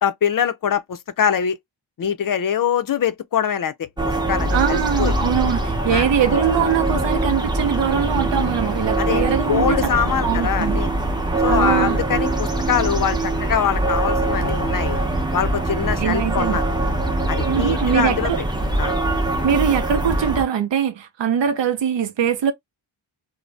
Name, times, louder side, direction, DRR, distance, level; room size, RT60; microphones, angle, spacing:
voice 1, 0.0-1.6 2.0-3.9 4.3-5.1 5.9-6.1 9.0-10.9 11.4-15.0 15.3-16.6 17.3-18.3 18.8-18.9, left 8 dB, 50° left, 0.4 m, -23 dB
sound 1, 4.0-20.4, right 2 dB, 10° right, 0.6 m, -22 dB
voice 2, 4.5-9.8 10.2-10.8 11.5-12.0 16.0-16.6 17.5-18.4 19.4-22.5, right 8 dB, 70° right, 0.6 m, -22 dB
2.5 x 2.0 x 3.2 m
wide cardioid pair, 105°, 46 cm